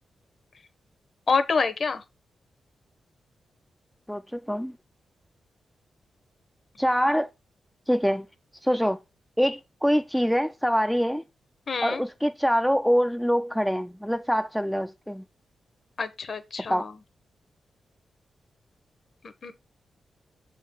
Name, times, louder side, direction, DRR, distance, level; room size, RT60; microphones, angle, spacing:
voice 1, 1.3-2.0 11.7-12.0 16.0-16.9 19.2-19.6, left 4 dB, 40° left, 0.8 m, -27 dB
voice 2, 4.1-4.7 6.8-7.3 7.9-8.3 8.6-9.0 9.4-11.2 11.8-15.2 16.7-16.8, equal, ahead, 0.3 m, -24 dB
7.1 x 3.7 x 5.4 m
wide cardioid pair, 150°, 0 cm